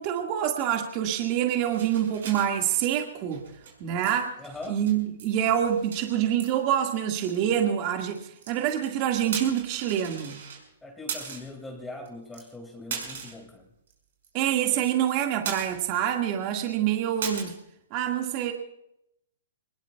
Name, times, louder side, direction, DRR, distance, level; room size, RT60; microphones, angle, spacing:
voice 1, 0.0-3.4 3.8-4.4 4.7-10.4 14.3-17.6 17.9-18.5, right 10 dB, 40° right, 3 dB, 1.8 m, -26 dB
sound 1, 1.7-2.9 3.2-3.8 4.0-4.2 4.5-5.3 5.6-6.0 6.4-6.5 7.3-7.4 8.0-8.9 9.3-10.6 11.1-11.5 12.1-12.2 12.3-12.4 12.9-13.5 13.9-14.0 14.2-14.3 14.6-15.1 15.5-16.1 16.3-16.4 17.2-17.4, right 6 dB, 65° right, 5.7 m, -38 dB
voice 2, 4.4-4.8 10.8-13.7, left 2 dB, 5° left, 2 dB, 2.2 m, -41 dB
24.0 x 20.5 x 2.3 m, 0.80 s
hypercardioid pair, 140°, 0 cm